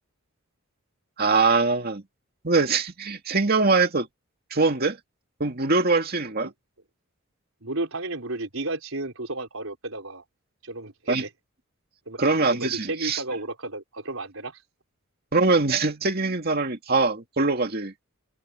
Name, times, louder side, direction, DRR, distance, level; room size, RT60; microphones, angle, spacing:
voice 1, 1.2-2.0 2.4-4.1 4.5-5.0 5.4-6.5 11.1-11.2 12.2-13.2 15.3-17.9, right 3 dB, 45° right, 2.3 m, -22 dB
voice 2, 7.6-10.2 10.6-11.3 12.1-12.2 12.5-14.6, right 2 dB, 75° right, 5.0 m, -33 dB
head